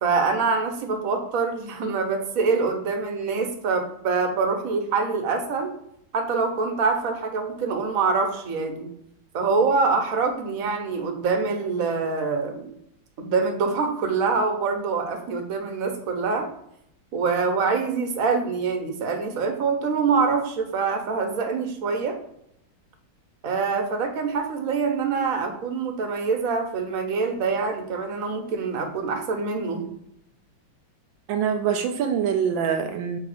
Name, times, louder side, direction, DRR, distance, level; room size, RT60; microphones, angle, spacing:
voice 1, 0.0-5.7 6.1-8.9 9.3-12.7 13.2-16.5 17.1-22.2 23.4-29.9, right 4 dB, 50° right, 4 dB, 1.4 m, -25 dB
voice 2, 31.3-33.2, right 7 dB, 85° right, 7 dB, 1.4 m, -24 dB
5.8 x 3.5 x 4.9 m, 0.75 s
omnidirectional pair, 2.0 m